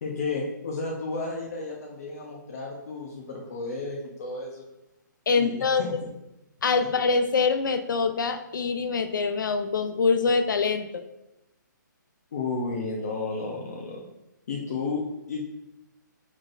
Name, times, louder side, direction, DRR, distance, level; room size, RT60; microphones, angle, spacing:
voice 1, 0.0-4.6 5.3-6.0 12.3-14.0 14.5-15.5, left 3 dB, 50° left, -2 dB, 1.1 m, -32 dB
voice 2, 5.3-6.0 6.6-11.0, left 4 dB, 75° left, 9 dB, 0.6 m, -24 dB
6.1 x 6.0 x 2.7 m, 0.92 s
hypercardioid pair, 165°, 11 cm